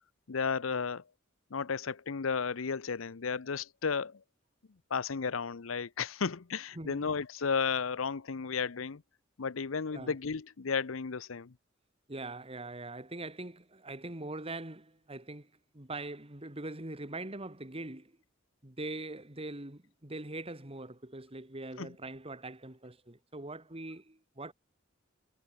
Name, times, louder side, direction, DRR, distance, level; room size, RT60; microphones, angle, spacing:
voice 1, 0.3-1.0 1.5-4.2 4.9-9.0 9.4-11.5 21.8-22.0, left 5 dB, 80° left, 0.7 m, -33 dB
voice 2, 12.1-18.1 18.6-24.5, right 2 dB, 30° right, 2.3 m, -42 dB
head